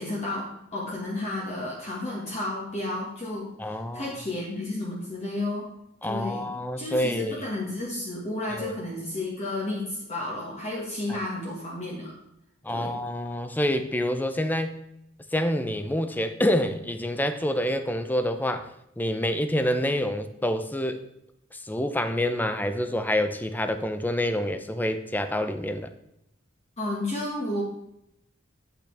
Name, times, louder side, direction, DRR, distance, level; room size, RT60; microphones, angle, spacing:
voice 1, 0.0-5.7 6.0-6.5 6.8-12.1 12.7-12.9 26.8-27.6, left 1 dB, 30° left, -4 dB, 1.7 m, -32 dB
voice 2, 3.6-4.1 6.0-7.4 8.5-8.7 12.6-14.8 15.3-18.7 19.0-21.0 21.5-25.9, left 1 dB, 10° left, 9 dB, 0.6 m, -27 dB
8.8 x 8.5 x 3.4 m, 0.79 s
head